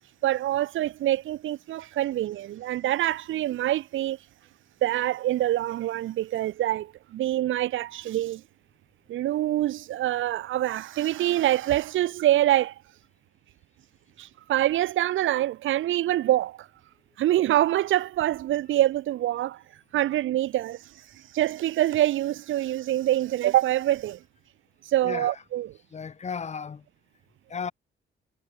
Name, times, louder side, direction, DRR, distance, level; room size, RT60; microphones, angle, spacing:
voice 1, 0.2-4.2 4.8-8.4 9.1-12.7 14.2-16.7 17.2-19.6 19.9-20.8 21.3-24.2 24.8-25.7, right 14 dB, 80° right, 1.4 m, -25 dB
voice 2, 25.0-25.4 25.9-26.8 27.5-27.7, left 6 dB, 35° left, 1.1 m, -34 dB
cardioid pair, 90°, 20 cm